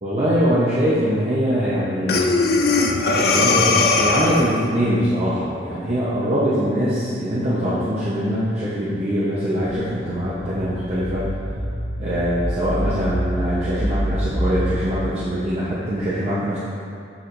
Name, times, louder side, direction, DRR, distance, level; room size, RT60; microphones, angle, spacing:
voice 1, 0.0-2.4 3.1-11.3 12.0-16.6, equal, 40° right, -9 dB, 0.9 m, -22 dB
Breathing, 2.1-4.6, left 3 dB, 60° left, 0.5 m, -19 dB
sound 1, 9.9-14.9, equal, 25° left, 1.3 m, -27 dB
7.1 x 7.0 x 2.6 m, 2.4 s
head